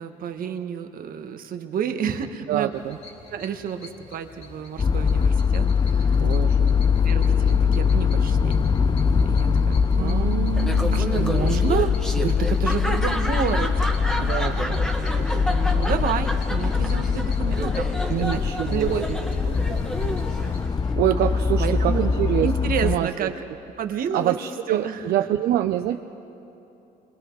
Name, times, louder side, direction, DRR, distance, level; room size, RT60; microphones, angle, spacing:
voice 1, 0.0-2.7 3.3-6.2 7.0-8.6 9.2-10.5 10.9-14.3 14.6-18.4 18.7-19.0 19.4-19.6 21.6-22.1 22.4-23.4 23.8-24.4 24.7-25.0, right 7 dB, 60° right, 7 dB, 1.4 m, -30 dB
voice 2, 2.5-3.0 6.2-6.8 9.9-11.3 14.2-14.8 18.1-19.2 20.6-20.7 21.0-22.5 22.8-23.3 24.1-26.0, right 12 dB, 75° right, 6 dB, 0.7 m, -26 dB
sound 1, 2.7-20.6, left 2 dB, 40° left, 3.7 m, -45 dB
sound 2, 4.8-23.0, left 6 dB, 25° left, 0.5 m, -22 dB
Laughter, 10.5-20.9, right 1 dB, 5° left, 1.7 m, -31 dB
28.0 x 23.0 x 4.7 m, 2.9 s
cardioid pair, 110°, 17 cm